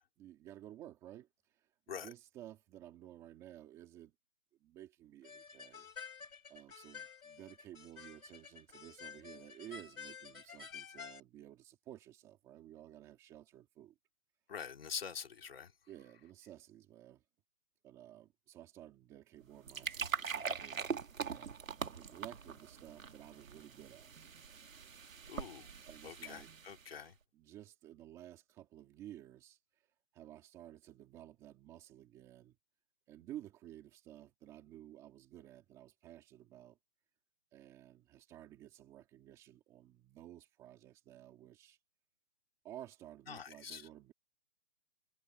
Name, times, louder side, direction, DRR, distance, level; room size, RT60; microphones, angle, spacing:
voice 1, 0.2-4.1 4.6-5.9 6.5-13.9 15.9-17.2 17.8-21.6 21.9-24.1 25.4-25.6 25.8-26.5 27.3-29.9 30.1-32.6 33.1-36.8 37.5-41.8 42.6-44.1, right 12 dB, 10° right, 2.1 m, -54 dB
sound 1, 5.2-11.2, left 6 dB, 85° left, 3.1 m, -51 dB
voice 2, 14.5-15.7 25.3-25.7 26.0-27.1 43.3-43.9, left 7 dB, 45° left, 3.3 m, -45 dB
sound 2, 19.4-27.0, right 6 dB, 75° right, 2.5 m, -43 dB
hypercardioid pair, 175°, 41 cm